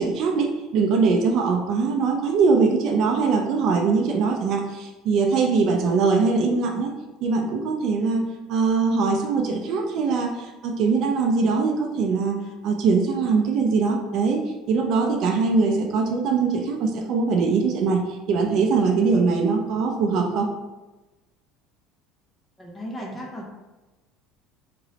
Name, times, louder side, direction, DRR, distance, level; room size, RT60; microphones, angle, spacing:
voice 1, 0.0-6.9 7.2-8.2 8.5-14.4 14.7-18.0 18.3-20.5, right 4 dB, 45° right, 2 dB, 0.4 m, -22 dB
voice 2, 22.6-23.5, equal, 10° left, -2 dB, 0.6 m, -35 dB
2.9 x 2.9 x 2.8 m, 1.1 s
cardioid pair, 170°, 0 cm